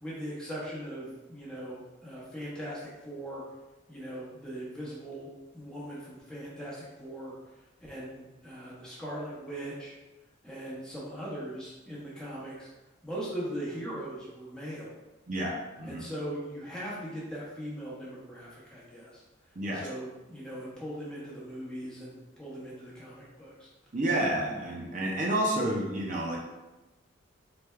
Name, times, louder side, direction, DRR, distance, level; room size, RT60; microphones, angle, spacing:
voice 1, 0.0-3.4 3.9-5.3 5.5-7.4 7.8-10.0 10.4-12.7 13.0-14.9 15.8-19.2 19.7-23.7, right 1 dB, 5° left, -8 dB, 0.9 m, -40 dB
voice 2, 15.3-16.0 19.6-19.9 23.9-26.4, right 1 dB, 40° right, -2 dB, 0.5 m, -30 dB
4.2 x 3.3 x 2.3 m, 1.1 s
head